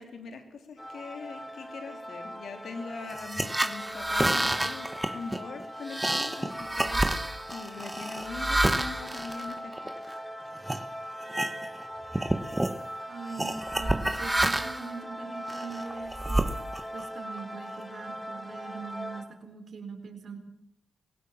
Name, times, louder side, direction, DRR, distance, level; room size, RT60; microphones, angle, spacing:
voice 1, 0.0-7.0 7.5-9.9, left 4 dB, 75° left, 7 dB, 3.8 m, -42 dB
sound 1, 0.8-19.2, equal, 15° left, 3.2 m, -41 dB
sound 2, 3.1-10.1 10.6-10.8 11.2-11.9 12.1-12.8 13.4-14.9 15.5-17.0, right 1 dB, 15° right, 1.3 m, -29 dB
voice 2, 13.1-16.5 16.9-20.4, right 5 dB, 65° right, 7 dB, 3.9 m, -42 dB
21.0 x 17.5 x 7.4 m, 0.77 s
cardioid pair, 65°, 0 cm